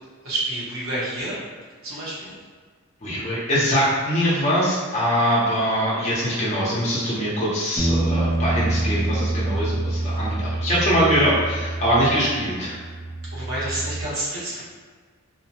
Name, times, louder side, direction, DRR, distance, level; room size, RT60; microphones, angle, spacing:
voice 1, 0.2-1.5 1.8-2.3 9.9-10.2 13.3-14.6, right 1 dB, 65° right, -6 dB, 0.9 m, -29 dB
voice 2, 3.0-12.8, equal, 30° left, -8 dB, 0.7 m, -22 dB
sound 1, 7.8-14.0, right 1 dB, 10° right, 0.5 m, -26 dB
2.7 x 2.1 x 2.8 m, 1.5 s
head